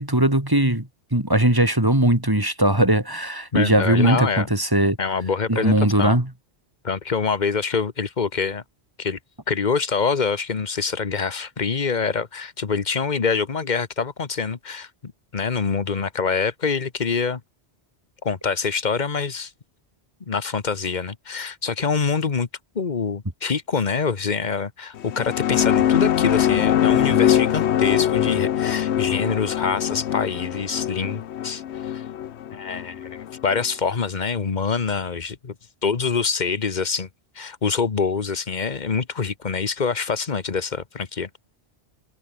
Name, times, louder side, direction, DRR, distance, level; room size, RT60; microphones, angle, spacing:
voice 1, 0.0-5.0 5.5-6.3, right 1 dB, 20° right, 3.1 m, -19 dB
voice 2, 3.5-4.5 5.0-6.2 6.8-8.6 9.0-9.2 9.5-17.4 18.2-19.5 20.3-22.5 22.7-32.0 32.5-35.5 35.8-37.1 37.3-41.3, left 5 dB, 45° left, 1.3 m, -25 dB
sound 1, 25.0-33.6, left 10 dB, 80° left, 1.0 m, -22 dB
omnidirectional pair, 1.1 m